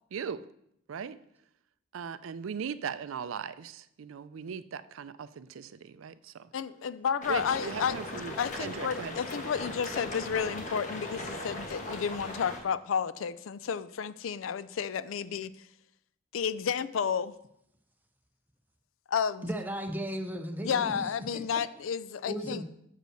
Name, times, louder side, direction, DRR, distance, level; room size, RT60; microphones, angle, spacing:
voice 1, 0.1-0.5 0.9-1.2 1.9-6.5 7.3-9.1, right 6 dB, 90° right, 15 dB, 0.4 m, -38 dB
voice 2, 6.5-8.0 8.4-15.5 16.3-17.3 19.1-19.5 20.6-22.6, left 7 dB, 85° left, 16 dB, 0.4 m, -31 dB
sound 1, 7.2-12.6, left 1 dB, 40° left, 1.3 m, -39 dB
voice 3, 19.4-21.4 22.3-22.6, right 1 dB, 10° right, 5 dB, 0.7 m, -35 dB
7.6 x 5.3 x 6.3 m, 0.76 s
head